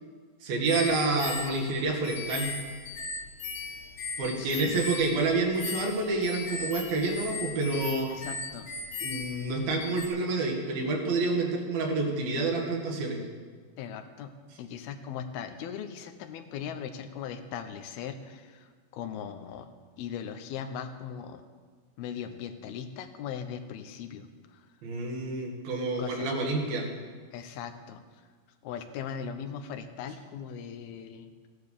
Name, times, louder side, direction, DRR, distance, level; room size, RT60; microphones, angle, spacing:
voice 1, 0.4-2.5 4.2-8.1 9.0-13.2 24.8-26.9, right 3 dB, 75° right, 0 dB, 3.9 m, -28 dB
sound 1, 0.7-10.1, left 3 dB, 70° left, 3.9 m, -38 dB
voice 2, 4.4-4.8 8.1-8.7 13.8-21.4 22.0-24.7 26.0-26.3 27.3-28.0 28.6-31.3, left 7 dB, 85° left, 7 dB, 2.9 m, -39 dB
15.5 x 11.5 x 6.7 m, 1.6 s
omnidirectional pair, 4.3 m